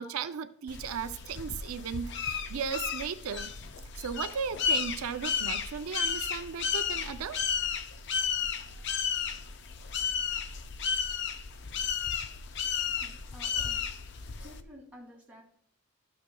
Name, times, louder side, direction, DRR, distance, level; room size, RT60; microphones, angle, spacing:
voice 1, 0.0-3.5 4.0-7.4, right 6 dB, 80° right, 9 dB, 0.5 m, -36 dB
sound 1, 0.7-14.6, left 7 dB, 55° left, 0.5 m, -33 dB
voice 2, 13.0-13.8 14.4-15.4, equal, 5° right, -3 dB, 2.1 m, -52 dB
12.5 x 6.6 x 2.3 m, 0.65 s
head